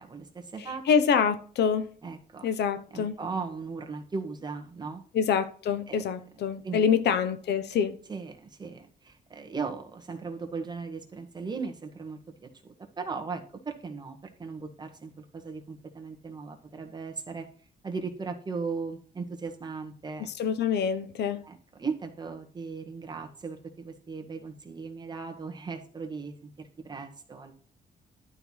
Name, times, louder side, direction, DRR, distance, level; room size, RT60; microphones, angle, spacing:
voice 1, 0.0-0.8 2.0-2.5 2.9-5.0 5.9-6.0 6.6-6.8 8.1-12.5 13.0-17.5 17.8-20.3 21.4-27.5, right 4 dB, 25° right, 1.7 m, -37 dB
voice 2, 0.6-1.9 2.4-3.2 5.1-8.0 20.2-21.4, left 7 dB, 80° left, 1.1 m, -26 dB
11.5 x 4.6 x 5.6 m
cardioid pair, 145°, 17 cm